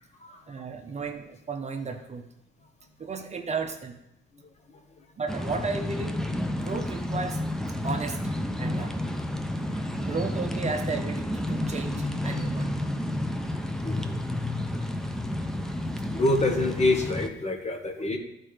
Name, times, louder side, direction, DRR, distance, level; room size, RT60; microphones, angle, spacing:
voice 1, 0.5-2.2 3.0-4.0 5.2-7.5 7.8-9.0 10.0-12.9, right 4 dB, 35° right, 5 dB, 0.8 m, -34 dB
sound 1, 5.3-17.3, left 1 dB, 5° left, 0.7 m, -31 dB
voice 2, 13.8-14.2 16.1-18.2, left 2 dB, 35° left, 4 dB, 1.4 m, -26 dB
11.0 x 4.4 x 5.0 m, 0.85 s
cardioid pair, 90°, 20 cm